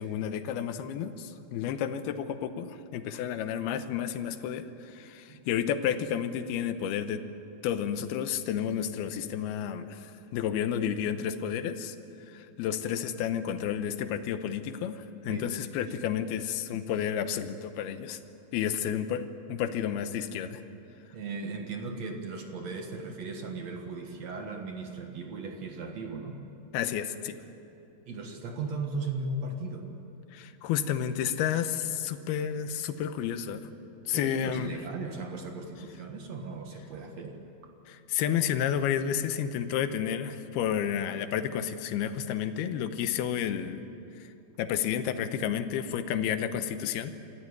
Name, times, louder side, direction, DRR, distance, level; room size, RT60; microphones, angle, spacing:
voice 1, 0.0-7.2 7.6-12.0 12.3-18.2 18.5-20.6 26.7-27.4 30.3-33.7 34.1-34.7 37.9-43.8 44.2-44.3 44.6-47.1, left 9 dB, 80° left, 10 dB, 2.8 m, -31 dB
voice 2, 15.3-15.8 21.1-26.4 28.1-29.9 34.1-37.7, right 3 dB, 55° right, 4 dB, 2.1 m, -37 dB
26.5 x 14.5 x 9.7 m, 2.8 s
omnidirectional pair, 4.6 m